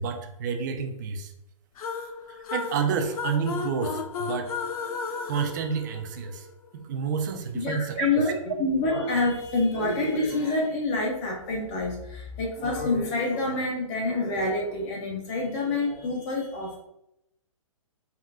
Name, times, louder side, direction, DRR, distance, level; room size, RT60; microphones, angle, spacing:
voice 1, 0.0-1.3 2.3-4.5 5.3-6.5 6.7-8.4, right 6 dB, 35° right, 5 dB, 0.4 m, -30 dB
sound 1, 1.8-6.5, left 5 dB, 80° left, 0.4 m, -34 dB
voice 2, 7.5-16.8, left 2 dB, 25° left, -1 dB, 0.6 m, -27 dB
3.6 x 2.3 x 2.3 m, 0.83 s
hypercardioid pair, 145°, 18 cm